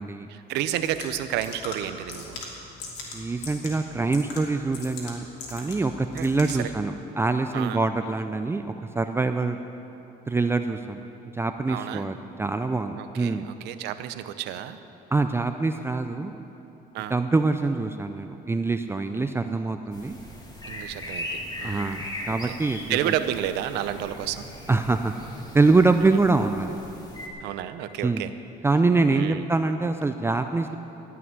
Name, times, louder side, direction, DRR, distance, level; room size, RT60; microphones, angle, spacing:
voice 1, 0.3-2.4 6.2-6.7 7.5-7.8 11.7-12.1 13.0-14.8 16.9-17.2 20.6-21.3 21.6-22.0 22.5-22.6 22.9-24.5 27.4-28.3 29.1-29.4, right 11 dB, 85° right, 11 dB, 0.7 m, -31 dB
sound 1, 0.5-6.8, left 3 dB, 85° left, 2.7 m, -41 dB
voice 2, 3.1-9.6 10.3-11.1 11.3-13.5 15.1-16.4 17.1-20.2 21.6-23.1 24.7-25.1 25.5-26.8 28.0-28.3 28.6-30.8, right 3 dB, 15° right, 7 dB, 0.4 m, -24 dB
sound 2, 19.9-27.3, left 1 dB, 25° left, 2.3 m, -39 dB
16.0 x 5.9 x 9.6 m, 2.9 s
cardioid pair, 110°, 17 cm